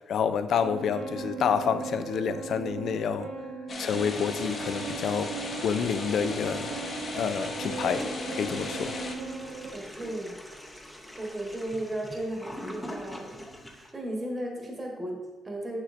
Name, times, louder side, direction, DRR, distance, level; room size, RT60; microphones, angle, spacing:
voice 1, 0.0-3.3 3.8-5.3 5.6-6.7 7.1-8.1 8.3-9.0, left 7 dB, 55° left, 0.4 m, -28 dB
sound 1, 0.6-9.7, right 5 dB, 75° right, 0.8 m, -38 dB
sound 2, 3.7-9.1, left 3 dB, 40° left, 1.0 m, -37 dB
Toilet flush, 7.9-13.9, equal, 5° left, 0.7 m, -43 dB
voice 2, 9.7-10.4 11.2-13.4 13.7-15.8, right 1 dB, 15° right, 1.1 m, -35 dB
7.8 x 7.3 x 2.5 m
cardioid pair, 150°, 0 cm